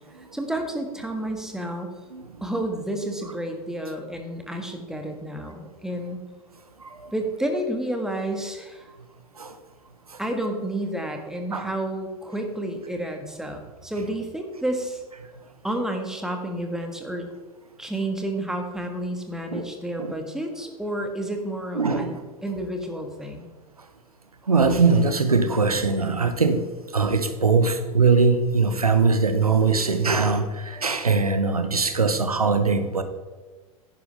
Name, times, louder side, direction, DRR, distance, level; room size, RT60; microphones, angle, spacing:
voice 1, 0.3-1.9 2.4-6.2 7.1-8.9 10.2-15.0 15.6-17.3 17.8-22.2 22.4-23.5, right 1 dB, 5° right, 4 dB, 1.6 m, -30 dB
voice 2, 6.8-7.1 9.4-9.5 11.5-11.7 19.5-19.6 20.0-20.1 21.7-22.2 24.5-26.7 26.9-33.0, right 4 dB, 85° right, 9 dB, 0.9 m, -21 dB
10.5 x 10.5 x 3.4 m, 1.3 s
figure-of-eight pair, 90°, 19 cm